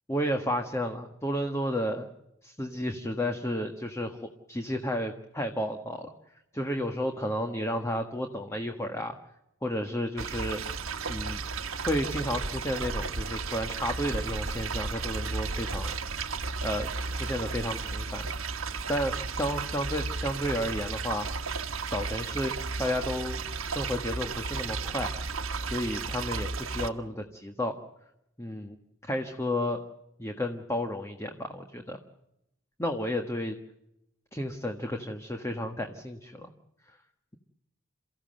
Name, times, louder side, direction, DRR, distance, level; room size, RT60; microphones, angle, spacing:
voice 1, 0.1-2.1 2.4-6.1 6.5-9.2 9.6-10.6 11.1-11.4 11.8-15.9 16.6-18.3 18.9-21.3 21.8-22.5 22.8-23.4 23.7-25.1 25.6-27.8 28.4-28.8 29.0-29.8 30.2-32.0 32.8-33.6 34.3-36.5 36.9-37.0, equal, 15° left, 5 dB, 1.6 m, -32 dB
sound 1, 10.2-26.9, right 4 dB, 80° right, 1.4 m, -34 dB
29.0 x 15.5 x 7.8 m, 0.83 s
head